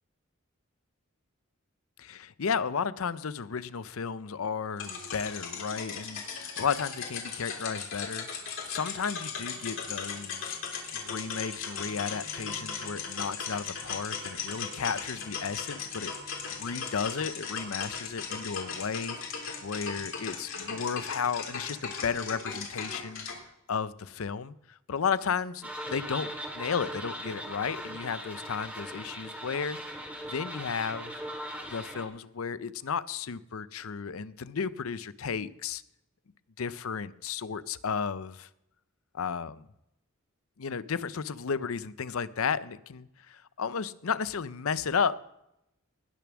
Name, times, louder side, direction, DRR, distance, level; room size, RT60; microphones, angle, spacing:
voice 1, 2.0-10.6 10.9-16.1 16.6-23.3 23.7-29.8 30.3-31.2 31.7-35.8 36.6-38.5 39.1-39.7 40.6-45.2, left 6 dB, 85° left, 16 dB, 0.6 m, -33 dB
sound 1, 4.8-23.4, left 5 dB, 65° left, 3.4 m, -37 dB
sound 2, 25.6-32.0, equal, 5° right, 2.0 m, -39 dB
19.0 x 6.9 x 6.1 m, 0.84 s
head